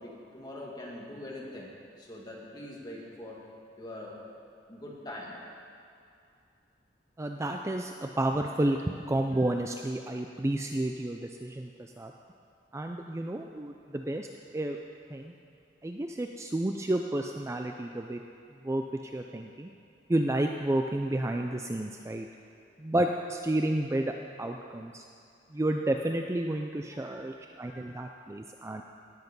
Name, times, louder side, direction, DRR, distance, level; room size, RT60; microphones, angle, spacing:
voice 1, 0.0-1.7 2.0-3.4 3.8-4.2 4.7-5.4 26.9-27.2 27.7-28.1, left 1 dB, 20° left, -4 dB, 2.2 m, -43 dB
voice 2, 7.2-12.1 12.7-14.3 14.5-14.8 15.1-15.3 15.8-18.2 18.6-18.8 19.1-19.7 20.1-22.3 22.8-24.1 24.4-25.0 25.5-28.8, right 1 dB, 15° right, 3 dB, 0.4 m, -31 dB
18.0 x 8.2 x 5.4 m, 2.5 s
head